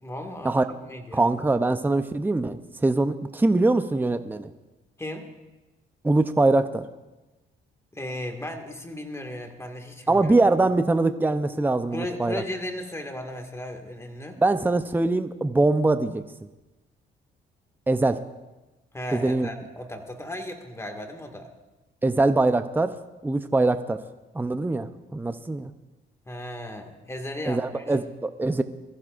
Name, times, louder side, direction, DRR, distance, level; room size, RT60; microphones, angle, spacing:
voice 1, 0.0-1.2 5.0-5.3 7.9-10.3 11.9-14.4 18.9-21.5 26.3-27.8, left 1 dB, 15° left, 4 dB, 2.0 m, -36 dB
voice 2, 1.1-4.5 6.0-6.8 10.1-12.4 14.4-16.2 17.9-18.2 19.1-19.5 22.0-22.9 23.2-24.0 24.3-25.7 27.5-28.6, right 2 dB, 10° right, 9 dB, 0.6 m, -23 dB
22.0 x 14.5 x 2.6 m, 1.1 s
cardioid pair, 90°, 20 cm